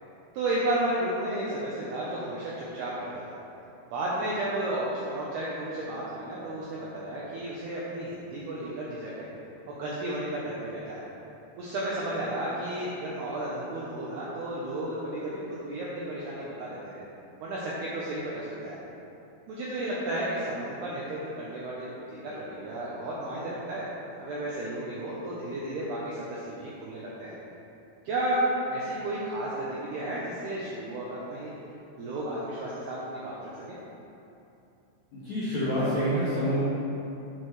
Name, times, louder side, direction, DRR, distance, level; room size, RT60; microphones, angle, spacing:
voice 1, 0.3-3.4 3.9-9.3 9.7-11.0 11.6-17.0 17.4-18.8 19.5-23.9 24.2-27.4 28.0-28.4 28.7-31.5 32.0-33.6, right 1 dB, 80° right, -6 dB, 2.3 m, -33 dB
voice 2, 35.1-36.6, equal, 65° left, -12 dB, 1.8 m, -27 dB
8.7 x 8.4 x 3.3 m, 2.8 s
omnidirectional pair, 5.9 m